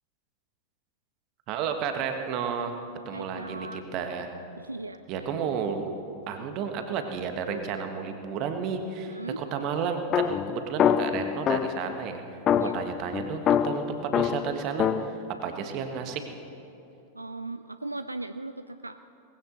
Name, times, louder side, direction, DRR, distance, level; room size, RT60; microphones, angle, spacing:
voice 1, 1.5-2.8 3.0-4.3 5.1-5.9 6.3-12.2 12.5-16.2, right 6 dB, 40° right, 6 dB, 1.4 m, -32 dB
voice 2, 3.1-3.8 4.6-5.3 9.1-9.4 12.6-12.8 17.1-19.0, right 2 dB, 85° right, 11 dB, 0.3 m, -38 dB
sound 1, 10.1-11.9 12.5-15.1, left 9 dB, 30° left, 0.5 m, -25 dB
19.5 x 16.0 x 4.0 m, 2.8 s
figure-of-eight pair, 90°, 0 cm